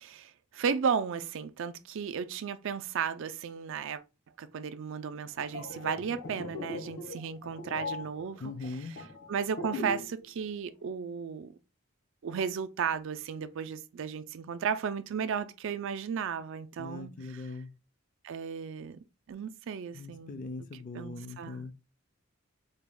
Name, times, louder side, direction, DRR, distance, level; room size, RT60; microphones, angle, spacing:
voice 1, 0.0-4.0 4.4-8.4 9.3-11.5 12.2-17.1 18.2-19.0 19.3-20.4 20.9-21.6, right 6 dB, 60° right, 0.4 m, -34 dB
sound 1, 5.3-10.2 10.4-10.7, left 2 dB, 85° left, 0.9 m, -40 dB
voice 2, 8.4-8.9 16.8-17.7 19.9-21.8, left 3 dB, 40° left, 0.4 m, -40 dB
4.0 x 2.2 x 3.4 m
head